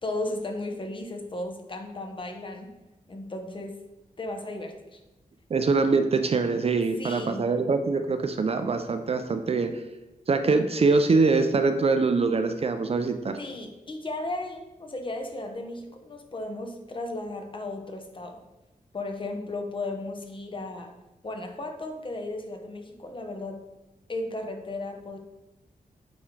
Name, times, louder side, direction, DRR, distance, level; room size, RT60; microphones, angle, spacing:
voice 1, 0.0-2.7 3.1-3.8 4.2-5.0 7.0-7.5 13.4-18.4 18.9-20.9 21.2-23.6 24.1-25.2, left 2 dB, 35° left, 4 dB, 0.8 m, -35 dB
voice 2, 5.5-9.7 10.3-13.4, right 4 dB, 45° right, 8 dB, 0.4 m, -23 dB
8.6 x 3.6 x 3.2 m, 0.98 s
wide cardioid pair, 130°, 15 cm